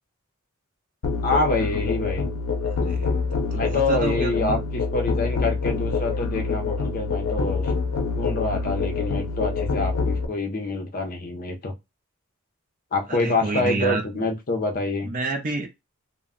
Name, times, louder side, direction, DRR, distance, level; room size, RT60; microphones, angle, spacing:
Musical instrument, 1.0-10.3, left 4 dB, 90° left, 0.5 m, -26 dB
voice 1, 1.2-2.3 3.5-7.7 8.2-11.7 12.9-15.1, left 2 dB, 40° left, 0.5 m, -26 dB
voice 2, 2.6-3.2 3.5-4.5 13.1-14.3 15.0-15.7, right 3 dB, 40° right, 0.5 m, -29 dB
2.2 x 2.0 x 3.6 m
head